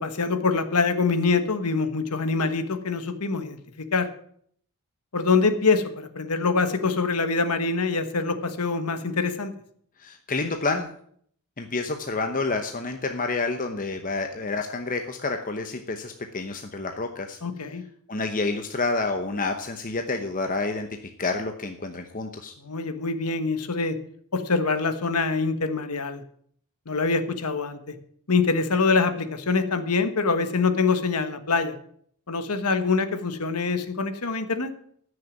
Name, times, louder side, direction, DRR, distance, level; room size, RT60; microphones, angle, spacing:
voice 1, 0.0-4.1 5.1-9.5 17.4-17.8 22.6-24.0 24.3-26.2 26.9-27.9 28.3-31.7 32.3-34.7, left 4 dB, 90° left, 9 dB, 1.2 m, -24 dB
voice 2, 10.0-10.9 11.6-17.4 18.1-20.9 21.2-22.5, left 3 dB, 40° left, 5 dB, 0.9 m, -29 dB
14.5 x 6.6 x 7.2 m, 0.63 s
head